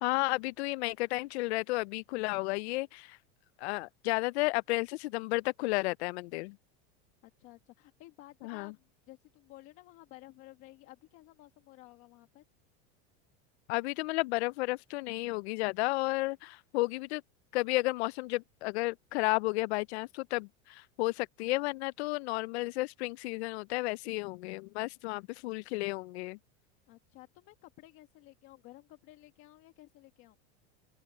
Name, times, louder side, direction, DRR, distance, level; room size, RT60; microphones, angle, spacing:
voice 1, 0.0-3.2 3.6-6.6 8.4-8.7 13.7-17.2 17.5-26.4, left 22 dB, 75° left, 0.5 m, -32 dB
voice 2, 7.2-12.4 26.9-30.4, left 17 dB, 40° left, 1.7 m, -54 dB
open air
supercardioid pair, 165°, 33 cm